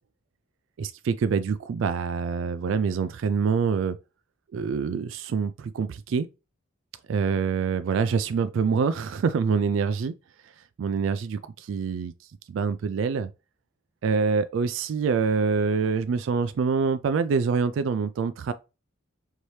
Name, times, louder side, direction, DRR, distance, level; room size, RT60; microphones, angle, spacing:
voice 1, 0.8-4.0 4.5-6.3 7.1-10.1 10.8-12.1 12.5-13.3 14.0-18.5, right 5 dB, 65° right, 0.3 m, -25 dB
4.6 x 2.8 x 3.1 m
head